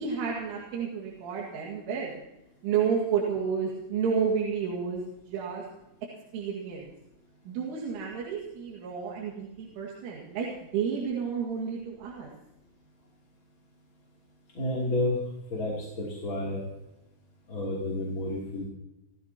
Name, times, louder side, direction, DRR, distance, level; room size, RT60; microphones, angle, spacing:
voice 1, 0.0-2.1 2.6-5.6 6.3-6.9 7.5-12.3, right 6 dB, 85° right, -2 dB, 4.6 m, -31 dB
voice 2, 14.5-15.2 15.5-16.6 17.5-18.6, left 1 dB, 30° left, -4 dB, 3.1 m, -30 dB
30.0 x 15.0 x 3.0 m, 0.94 s
omnidirectional pair, 5.4 m